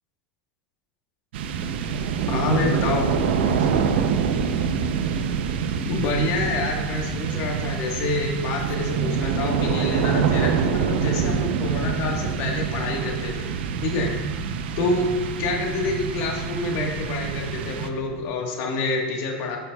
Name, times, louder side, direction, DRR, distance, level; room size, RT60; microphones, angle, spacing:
sound 1, 1.3-18.3, right 6 dB, 80° right, 0.6 m, -26 dB
voice 1, 2.3-3.1 3.4-3.7 5.8-13.5 13.8-14.1 14.8-15.1 15.4-19.6, left 2 dB, 55° left, 1 dB, 1.4 m, -26 dB
12.5 x 6.2 x 2.3 m, 1.3 s
supercardioid pair, 125°, 6 cm